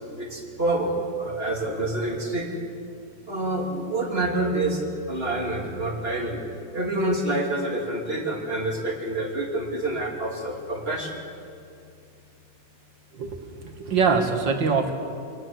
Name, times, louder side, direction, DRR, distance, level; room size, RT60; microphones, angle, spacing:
voice 1, 0.2-2.6 3.3-6.4 6.7-11.2, right 2 dB, 30° right, 0 dB, 3.2 m, -27 dB
voice 2, 13.1-14.9, right 5 dB, 75° right, 4 dB, 2.6 m, -24 dB
26.5 x 18.5 x 7.8 m, 2.5 s
omnidirectional pair, 2.0 m